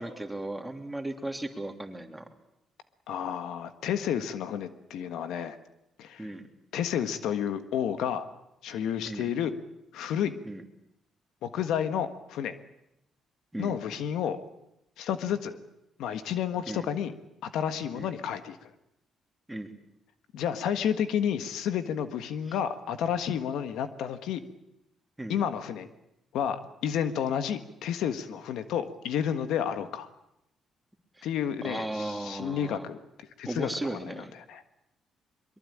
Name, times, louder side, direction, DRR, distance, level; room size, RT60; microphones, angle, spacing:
voice 1, 0.0-2.2 6.2-6.5 9.0-9.3 10.4-10.6 13.5-13.7 16.7-16.8 17.9-18.1 19.5-19.7 25.2-25.4 31.6-32.8 33.5-34.3, right 1 dB, 10° right, 4 dB, 3.1 m, -36 dB
voice 2, 3.1-5.6 6.0-6.3 6.7-8.3 8.6-9.5 9.9-10.3 11.4-12.6 13.6-14.4 15.0-15.6 16.0-17.1 17.4-18.7 20.3-24.4 25.3-25.9 26.3-30.1 31.2-34.6, left 9 dB, 85° left, 10 dB, 1.5 m, -31 dB
23.0 x 22.5 x 8.7 m, 0.85 s
cardioid pair, 90°, 0 cm